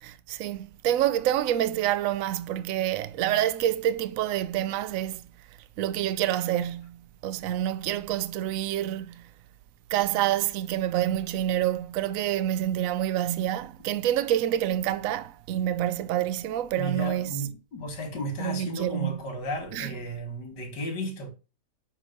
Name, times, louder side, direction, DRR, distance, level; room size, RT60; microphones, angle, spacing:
voice 1, 0.0-5.2 5.8-7.0 7.2-9.2 9.9-17.4 18.4-19.2 19.7-19.9, right 12 dB, 65° right, 0.9 m, -27 dB
voice 2, 16.8-21.3, right 1 dB, 85° left, 2.3 m, -34 dB
7.6 x 3.2 x 5.1 m
omnidirectional pair, 1.8 m